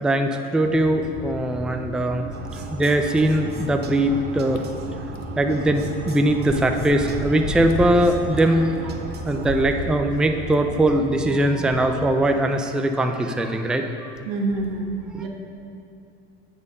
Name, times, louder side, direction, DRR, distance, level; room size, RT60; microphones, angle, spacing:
voice 1, 0.0-2.3 2.7-4.6 5.4-8.9 9.2-14.1 15.1-15.2, right 1 dB, 5° right, 5 dB, 0.4 m, -21 dB
sound 1, 0.6-12.1, right 1 dB, 55° right, 1.6 m, -36 dB
sound 2, 2.3-9.7, right 5 dB, 35° right, 0.8 m, -38 dB
sound 3, 4.6-4.7 5.1-5.2 6.1-6.2 6.5-7.9 8.4-8.5 9.2-10.0 10.5-10.6 11.2-11.3, left 4 dB, 65° left, 0.8 m, -32 dB
voice 2, 14.2-15.3, right 3 dB, 90° right, 1 dB, 1.2 m, -27 dB
8.6 x 4.4 x 5.3 m, 2.6 s
supercardioid pair, 90°, 30 cm